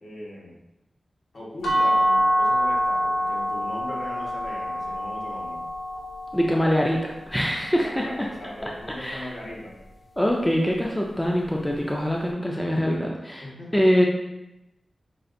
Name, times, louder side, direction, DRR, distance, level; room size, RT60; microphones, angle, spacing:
voice 1, 0.0-0.6 1.3-5.6 7.8-9.8 13.4-13.7, left 1 dB, 60° left, -5 dB, 1.2 m, -39 dB
sound 1, 1.6-7.4, equal, 85° left, 0.6 m, -25 dB
voice 2, 6.3-8.3 9.0-9.3 10.2-13.4 13.7-14.1, equal, 10° left, -1 dB, 0.4 m, -23 dB
5.4 x 2.4 x 2.6 m, 0.91 s
wide cardioid pair, 75°, 0 cm